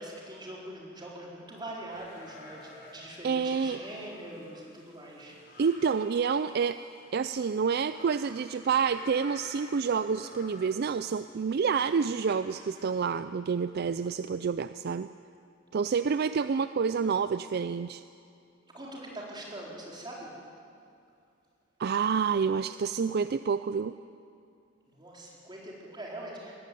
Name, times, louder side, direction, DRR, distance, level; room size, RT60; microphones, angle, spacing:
voice 1, 0.0-5.4 18.7-20.3 24.9-26.6, right 1 dB, 25° right, -3 dB, 4.3 m, -43 dB
sound 1, 1.9-13.0, left 2 dB, 55° left, 5.3 m, -51 dB
voice 2, 3.2-3.8 5.6-6.8 7.1-15.1 15.7-18.0 21.8-23.9, right 6 dB, 55° right, 12 dB, 0.4 m, -28 dB
19.5 x 15.0 x 9.2 m, 2.5 s
head